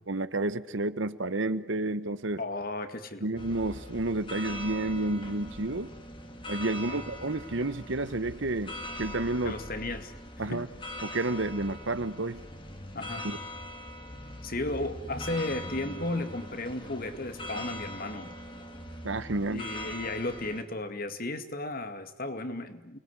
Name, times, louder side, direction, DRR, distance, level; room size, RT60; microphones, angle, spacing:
voice 1, 0.0-2.4 3.2-5.9 6.5-9.6 10.4-10.7 11.0-12.4 13.2-13.4 19.0-19.6, right 2 dB, 65° right, 13 dB, 1.1 m, -30 dB
voice 2, 2.4-3.3 6.9-7.0 9.4-10.1 10.4-10.7 12.9-13.3 14.4-18.4 19.5-23.0, left 2 dB, 45° left, 8 dB, 2.1 m, -34 dB
sound 1, 3.3-20.6, left 1 dB, 25° left, 2.4 m, -41 dB
29.5 x 20.5 x 9.7 m, 0.95 s
head